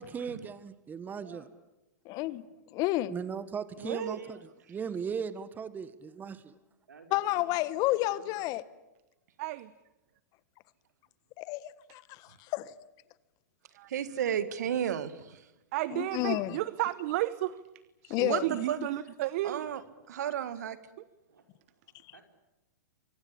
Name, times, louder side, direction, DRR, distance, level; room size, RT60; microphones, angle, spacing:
voice 1, 0.0-1.4 3.1-4.4 4.7-6.5, right 6 dB, 20° right, 1.5 m, -37 dB
voice 2, 1.0-1.5 3.8-4.5 6.9-8.4 14.0-14.3 21.2-22.2, right 4 dB, 85° right, 5.2 m, -54 dB
voice 3, 2.0-2.4 2.7-3.1 7.1-8.6 11.4-12.7 15.9-16.6 18.1-18.5 18.8-18.9, left 17 dB, 40° left, 1.4 m, -30 dB
voice 4, 3.8-4.2 13.9-15.4 18.2-18.8 19.4-19.8 20.1-20.8, right 9 dB, 70° right, 2.0 m, -32 dB
voice 5, 9.4-9.7 13.8-13.9 15.7-17.6 18.0-19.6, right 16 dB, 55° right, 1.0 m, -32 dB
28.5 x 24.0 x 8.7 m
hypercardioid pair, 115°, 9 cm